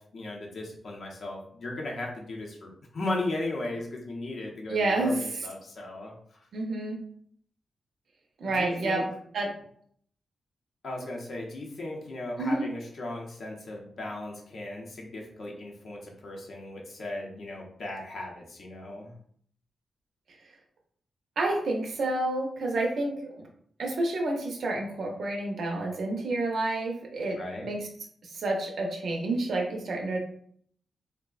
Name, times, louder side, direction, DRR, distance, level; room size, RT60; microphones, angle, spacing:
voice 1, 0.0-6.5 8.4-9.0 10.8-19.1 27.4-27.7, left 2 dB, 55° left, -1 dB, 0.6 m, -36 dB
voice 2, 4.7-5.2 6.5-7.0 8.4-9.0 9.3-9.5 12.4-12.6 21.4-23.3 23.8-27.9 28.2-30.2, right 2 dB, 60° right, 0 dB, 0.5 m, -29 dB
3.4 x 2.0 x 2.3 m, 0.62 s
wide cardioid pair, 155°, 0 cm